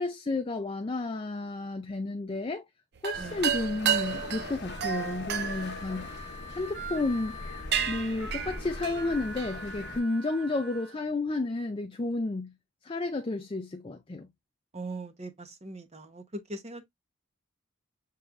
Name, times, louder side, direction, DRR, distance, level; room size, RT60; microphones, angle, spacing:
voice 1, 0.0-2.7 3.0-7.4 7.9-12.5 12.8-14.3, left 2 dB, 25° left, 0.4 m, -32 dB
sound 1, 3.0-6.7 7.3-7.4 7.7-9.6, right 8 dB, 50° right, 0.5 m, -32 dB
sound 2, 3.1-10.0, left 2 dB, 55° left, 1.0 m, -42 dB
Harmonica, 4.4-10.9, right 1 dB, 85° right, 2.1 m, -44 dB
voice 2, 14.7-16.8, right 2 dB, 30° right, 0.9 m, -40 dB
6.5 x 3.2 x 2.4 m
head